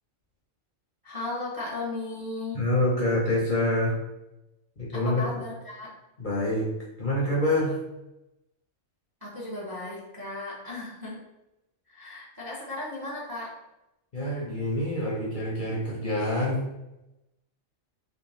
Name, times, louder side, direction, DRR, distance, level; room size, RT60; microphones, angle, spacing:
voice 1, 1.0-2.6 4.9-5.9 9.2-11.2 11.9-13.5, left 2 dB, 20° right, -6 dB, 0.7 m, -36 dB
voice 2, 2.5-4.0 4.8-5.3 6.2-6.7 7.0-7.8 14.1-16.6, left 1 dB, 45° left, -4 dB, 0.8 m, -26 dB
3.5 x 3.1 x 3.1 m, 0.93 s
omnidirectional pair, 1.4 m